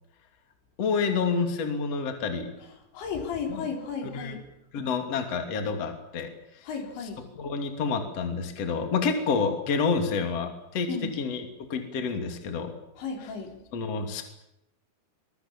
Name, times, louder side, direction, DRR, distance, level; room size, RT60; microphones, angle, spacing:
voice 1, 0.8-2.5 3.5-3.7 4.1-4.3 4.7-6.3 7.4-10.9 11.2-12.7 13.7-14.2, left 5 dB, 40° left, 5 dB, 3.3 m, -28 dB
voice 2, 2.9-4.4 6.6-7.3 10.9-11.1 13.0-13.5, left 5 dB, 65° left, 3 dB, 6.1 m, -34 dB
25.5 x 22.5 x 7.3 m, 0.82 s
omnidirectional pair, 5.6 m